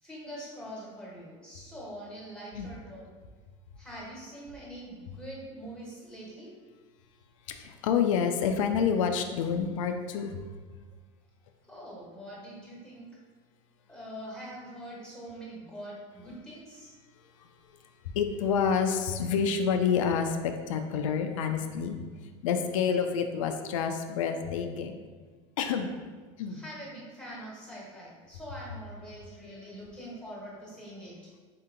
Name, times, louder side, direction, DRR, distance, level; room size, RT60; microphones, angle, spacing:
voice 1, 0.0-3.1 3.8-6.6 11.7-13.1 13.9-16.9 26.5-31.3, equal, 5° left, -6 dB, 1.4 m, -44 dB
voice 2, 7.5-10.5 18.1-22.0 22.4-25.0 25.6-25.9 26.4-26.6, left 6 dB, 80° left, 6 dB, 0.4 m, -28 dB
4.2 x 2.8 x 3.8 m, 1.4 s
supercardioid pair, 110°, 16 cm